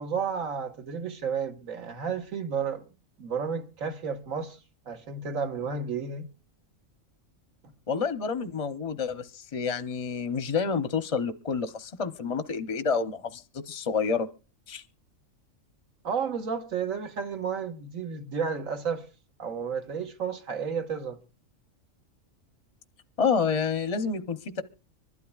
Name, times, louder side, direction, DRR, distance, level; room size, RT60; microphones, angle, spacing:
voice 1, 0.0-2.8 3.2-4.6 4.9-6.3 16.0-19.0 19.4-21.2, right 6 dB, 75° right, 1.7 m, -32 dB
voice 2, 7.9-14.3 14.7-14.8 23.2-24.6, left 5 dB, 40° left, 0.5 m, -29 dB
25.0 x 12.0 x 2.3 m
omnidirectional pair, 1.4 m